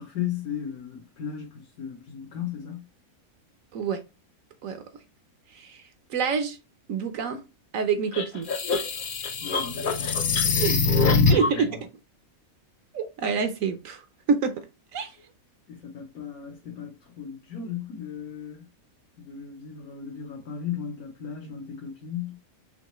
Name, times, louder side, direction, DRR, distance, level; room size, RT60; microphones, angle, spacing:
voice 1, 0.0-2.9 9.4-11.8 15.7-18.7 19.2-22.4, left 8 dB, 80° left, 1.5 m, -36 dB
voice 2, 5.5-5.8 6.1-6.6 6.9-7.4 7.7-8.5 10.6-10.8 11.3-11.9 12.9-14.0 14.3-14.5 14.9-15.2, right 6 dB, 70° right, 1.1 m, -27 dB
sound 1, 8.1-11.6, left 4 dB, 50° left, 0.6 m, -23 dB
5.7 x 3.0 x 3.0 m
omnidirectional pair, 1.5 m